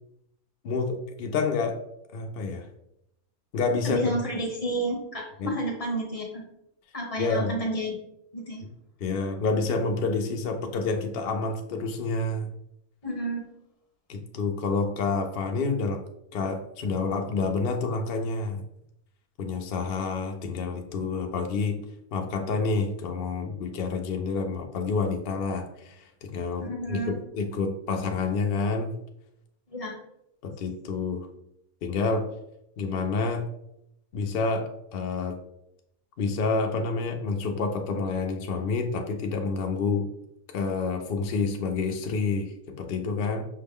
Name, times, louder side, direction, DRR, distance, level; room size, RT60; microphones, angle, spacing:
voice 1, 0.6-1.8 2.1-2.7 3.5-4.1 5.4-5.5 7.2-7.6 9.0-12.5 14.1-16.0 16.3-18.6 19.4-21.8 22.1-27.0 27.3-28.9 30.4-31.3 31.8-32.3 32.8-33.4 34.1-35.4 36.2-40.1 40.5-43.4, left 4 dB, 70° left, 4 dB, 0.5 m, -28 dB
voice 2, 3.8-6.5 6.9-7.9 8.3-8.7 13.0-13.5 26.6-27.2 29.7-30.0, right 1 dB, 25° left, -1 dB, 0.9 m, -31 dB
5.6 x 2.2 x 3.5 m, 0.80 s
omnidirectional pair, 1.7 m